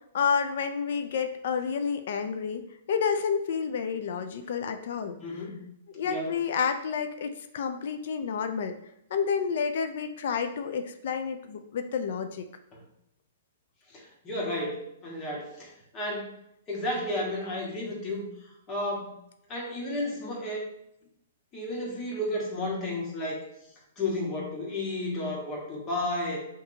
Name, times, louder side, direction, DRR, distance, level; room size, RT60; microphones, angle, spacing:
voice 1, 0.1-5.2 5.9-8.8 9.1-12.5, left 6 dB, 65° left, 8 dB, 0.4 m, -30 dB
voice 2, 5.2-5.6 6.0-6.3 12.7-12.8 13.9-16.3 16.7-18.3 18.7-19.1 19.5-20.6 21.5-23.4 24.0-26.4, left 1 dB, 25° left, -3 dB, 1.4 m, -32 dB
5.8 x 2.7 x 2.8 m, 0.79 s
hypercardioid pair, 145°, 0 cm